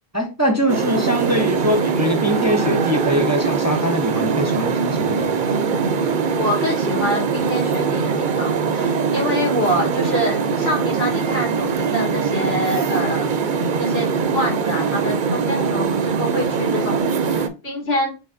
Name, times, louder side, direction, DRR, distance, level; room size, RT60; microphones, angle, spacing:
voice 1, 0.1-5.5, equal, 20° right, 0.6 m, -22 dB
sound 1, 0.7-17.5, right 5 dB, 55° right, 0.7 m, -22 dB
voice 2, 6.4-13.3 13.8-14.1 14.3-18.1, equal, 80° left, 2.4 m, -25 dB
6.9 x 3.0 x 2.6 m
omnidirectional pair, 1.0 m